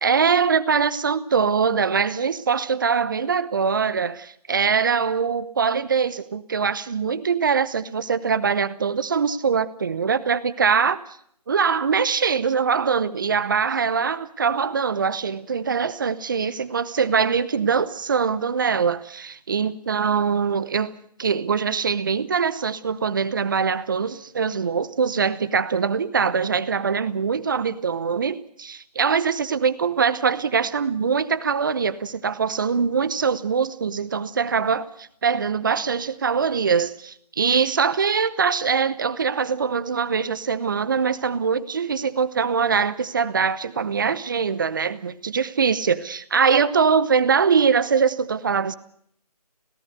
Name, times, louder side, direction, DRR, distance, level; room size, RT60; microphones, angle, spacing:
voice 1, 0.0-11.0 11.5-20.9 21.2-48.8, right 6 dB, 30° right, 0.9 m, -23 dB
26.0 x 17.5 x 6.6 m
figure-of-eight pair, 160°, 20 cm